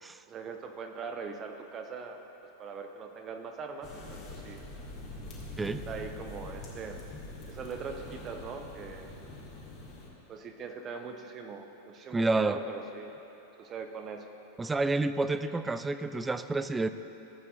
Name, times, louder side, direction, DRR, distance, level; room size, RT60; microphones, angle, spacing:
voice 1, 0.3-2.2 2.6-4.6 5.6-7.0 7.5-9.1 10.3-13.1 13.6-14.4, right 5 dB, 30° right, 5 dB, 0.8 m, -41 dB
sound 1, 3.8-10.1, left 2 dB, 30° left, 1.9 m, -44 dB
voice 2, 12.1-12.6 14.6-16.9, right 3 dB, 10° right, 11 dB, 0.3 m, -29 dB
15.5 x 8.2 x 2.5 m, 2.9 s
figure-of-eight pair, 90°, 0 cm